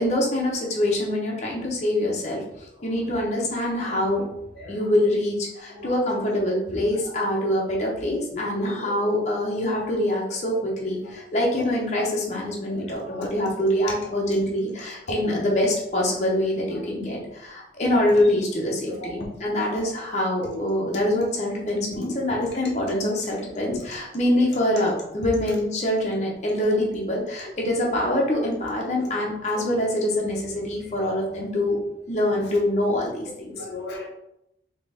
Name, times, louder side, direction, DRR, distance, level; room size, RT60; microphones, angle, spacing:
voice 1, 0.0-2.4 2.8-4.2 4.7-31.8 32.1-33.5, left 1 dB, 40° left, -2 dB, 0.8 m, -25 dB
voice 2, 4.5-4.9 5.7-6.0 6.9-7.5 8.3-9.3 10.5-10.6 11.0-11.7 12.7-13.3 15.1-15.4 18.1-18.2 18.8-19.8 20.4-20.6 21.9-22.4 22.9-23.0 23.7-23.8 24.7-24.8 27.4-27.5 29.0-29.1 31.1-31.3 32.4-32.5 33.5-34.1, left 1 dB, 75° left, -1 dB, 0.7 m, -38 dB
3.9 x 3.0 x 3.3 m, 0.84 s
head